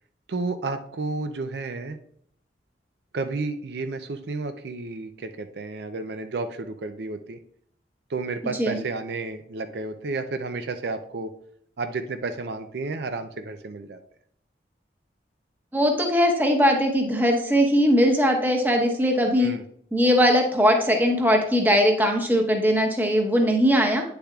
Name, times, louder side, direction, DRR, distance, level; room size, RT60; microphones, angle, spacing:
voice 1, 0.3-2.0 3.1-7.4 8.1-11.3 11.8-14.0 19.4-19.6, right 3 dB, 65° right, 8 dB, 0.5 m, -31 dB
voice 2, 15.7-19.5 19.9-24.0, equal, 10° right, 2 dB, 0.9 m, -20 dB
9.5 x 6.9 x 2.4 m, 0.67 s
head